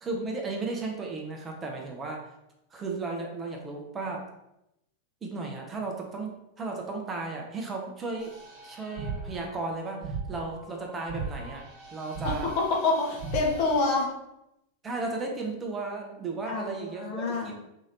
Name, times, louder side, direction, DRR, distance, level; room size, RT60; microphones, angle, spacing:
voice 1, 0.0-2.2 2.7-4.3 5.2-8.3 8.6-11.6 11.9-12.5 14.8-17.5, right 3 dB, 20° right, 1 dB, 0.6 m, -35 dB
sound 1, 8.2-14.1, right 4 dB, 40° right, 1.1 m, -38 dB
voice 2, 12.2-14.1 16.5-17.5, left 3 dB, 45° left, -1 dB, 0.9 m, -27 dB
3.0 x 2.7 x 3.9 m, 0.85 s
figure-of-eight pair, 90°, 0 cm